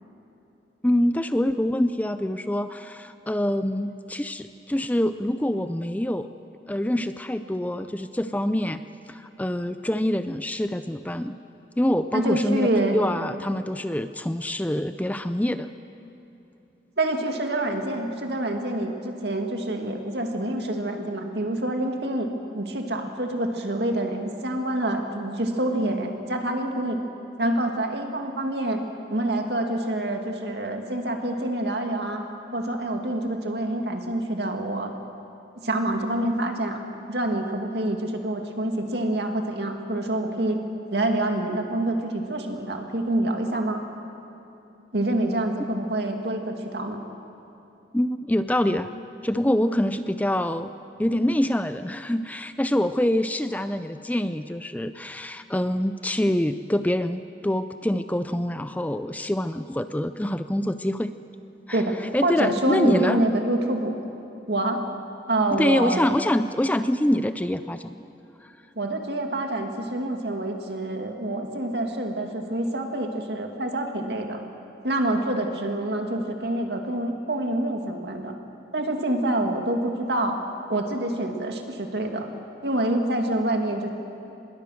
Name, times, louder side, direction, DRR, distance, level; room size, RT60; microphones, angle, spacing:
voice 1, 0.8-6.3 6.7-8.8 9.1-11.4 11.8-15.7 47.9-48.9 49.2-50.7 51.0-61.1 61.7-61.8 62.1-63.2 65.5-68.0 68.4-68.5, left 1 dB, 10° left, 11 dB, 0.4 m, -25 dB
voice 2, 12.1-13.0 17.0-27.0 27.4-28.8 29.1-32.2 32.5-34.9 35.6-36.8 37.1-40.6 40.9-43.8 44.9-47.0 61.7-61.9 62.2-63.9 64.5-64.8 65.3-66.0 68.8-74.4 74.8-78.3 78.7-80.4 80.7-82.3 82.6-83.9, right 1 dB, 70° right, 3 dB, 2.3 m, -26 dB
25.0 x 21.0 x 6.5 m, 2.9 s
head